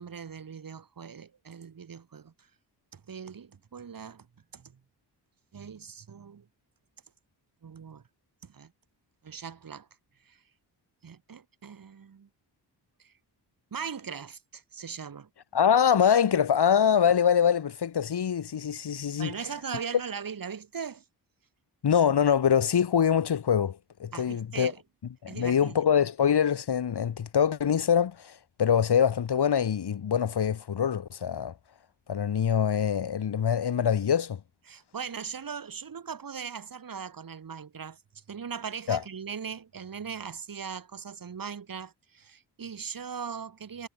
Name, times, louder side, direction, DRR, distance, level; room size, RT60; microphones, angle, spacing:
voice 1, 0.0-2.5 2.9-4.3 4.5-4.8 5.5-6.5 7.6-8.0 8.4-8.7 9.2-9.9 10.2-10.4 11.0-12.3 13.0-13.1 13.7-15.3 19.2-21.0 24.1-24.8 25.3-25.9 34.7-43.9, right 6 dB, 50° right, 5.4 m, -40 dB
voice 2, 15.5-19.3 21.8-24.7 25.2-31.5 32.1-34.4 38.9-39.0, left 8 dB, 65° left, 4.9 m, -24 dB
wide cardioid pair, 140°, 42 cm